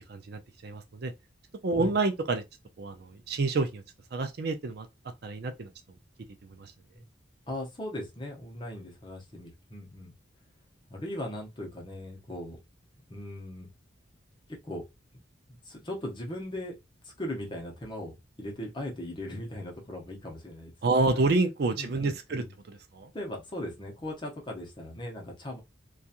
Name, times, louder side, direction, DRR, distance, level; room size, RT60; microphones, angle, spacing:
voice 1, 0.1-1.1 1.6-2.4 2.8-3.8 4.1-4.9 5.2-5.7 6.6-6.7 20.8-23.1, right 3 dB, 55° right, 0.4 m, -28 dB
voice 2, 7.5-10.1 10.9-12.6 13.1-13.7 14.6-14.8 15.5-16.8 17.0-21.2 21.8-22.5 23.1-25.6, left 1 dB, 25° left, 0.8 m, -39 dB
2.8 x 2.3 x 2.4 m
head